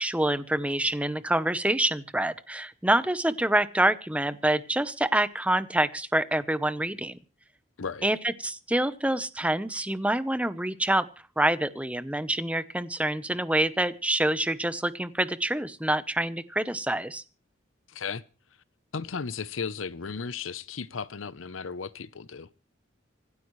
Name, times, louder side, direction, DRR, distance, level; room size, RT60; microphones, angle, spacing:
voice 1, 0.0-7.2 8.0-11.1 11.4-17.2, right 1 dB, 5° right, 0.9 m, -26 dB
voice 2, 17.9-18.2 18.9-22.5, left 5 dB, 85° left, 0.8 m, -35 dB
26.5 x 12.0 x 3.2 m
head